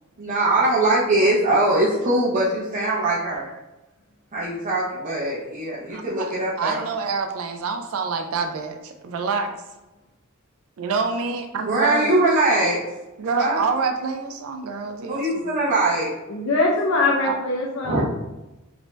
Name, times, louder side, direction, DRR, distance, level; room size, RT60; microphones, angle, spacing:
voice 1, 0.2-3.5 4.3-6.8 11.7-12.8 13.4-13.6 15.1-16.1 17.8-18.0, right 2 dB, 40° right, -8 dB, 0.6 m, -21 dB
voice 2, 5.9-9.6 10.8-12.1 13.2-15.5 17.2-17.4, right 4 dB, 75° right, 5 dB, 0.4 m, -27 dB
voice 3, 16.3-18.0, left 2 dB, 70° left, -2 dB, 0.5 m, -22 dB
3.2 x 2.6 x 3.1 m, 1.0 s
head